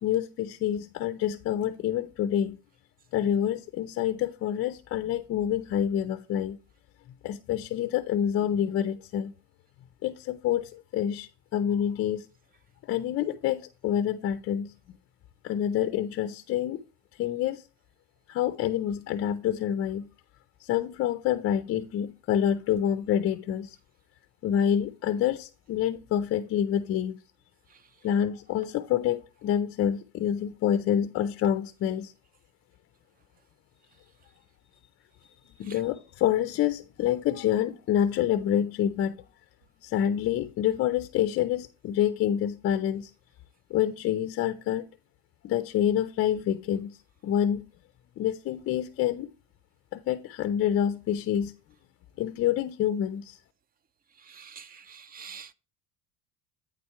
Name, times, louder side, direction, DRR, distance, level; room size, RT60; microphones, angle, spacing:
voice 1, 0.0-2.6 3.1-6.6 7.2-9.3 10.0-12.3 12.9-14.7 15.4-16.8 17.2-17.6 18.3-20.1 20.6-23.8 24.4-27.2 28.0-32.1 35.4-39.2 39.8-43.1 43.7-44.9 45.4-47.0 47.2-47.7 48.2-49.3 49.9-51.5 52.2-53.4, left 10 dB, 40° left, 0.4 m, -27 dB
voice 2, 54.3-55.5, right 6 dB, 25° right, 0.4 m, -46 dB
8.9 x 4.3 x 4.6 m
cardioid pair, 135°, 36 cm